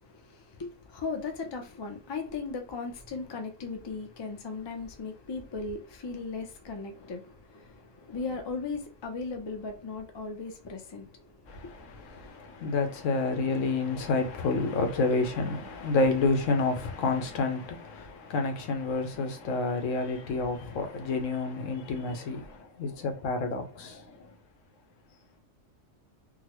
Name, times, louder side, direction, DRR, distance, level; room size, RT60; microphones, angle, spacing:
voice 1, 0.0-12.2 20.0-20.3 21.8-22.2, left 4 dB, 35° left, 0.4 m, -38 dB
voice 2, 11.5-24.3, left 3 dB, 75° left, 1.1 m, -29 dB
3.8 x 2.1 x 2.9 m
omnidirectional pair, 1.3 m